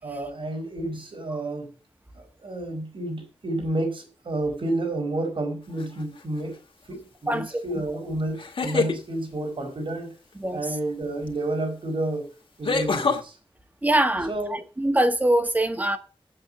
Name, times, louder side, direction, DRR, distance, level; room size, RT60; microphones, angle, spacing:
voice 1, 0.0-1.7 2.1-6.6 6.9-10.1 10.5-12.3 12.6-13.4 14.2-14.6, right 2 dB, 60° right, 4.8 m, -30 dB
sound 1, 5.8-6.2 8.3-9.0 11.3-11.4 12.6-13.2, left 4 dB, 60° left, 2.1 m, -25 dB
voice 2, 7.3-7.6 10.4-10.6 13.8-16.0, right 1 dB, 15° right, 1.6 m, -23 dB
8.6 x 7.8 x 7.2 m
wide cardioid pair, 140°, 10 cm